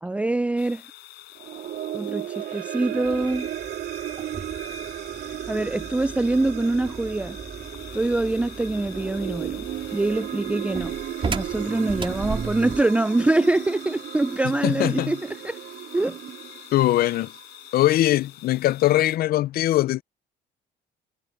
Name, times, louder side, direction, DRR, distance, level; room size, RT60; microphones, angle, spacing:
voice 1, 0.0-0.8 1.9-3.5 5.5-7.4 7.9-10.9 11.2-15.6 15.9-16.2, right 2 dB, 5° right, 0.4 m, -24 dB
sound 1, 0.6-19.2, left 19 dB, 85° left, 5.2 m, -46 dB
sound 2, 1.3-17.8, right 12 dB, 70° right, 3.8 m, -35 dB
sound 3, 3.0-12.9, right 5 dB, 30° right, 4.6 m, -37 dB
voice 2, 14.6-15.1 16.7-17.3 17.7-20.0, left 15 dB, 60° left, 0.6 m, -21 dB
cardioid pair, 110°, 17 cm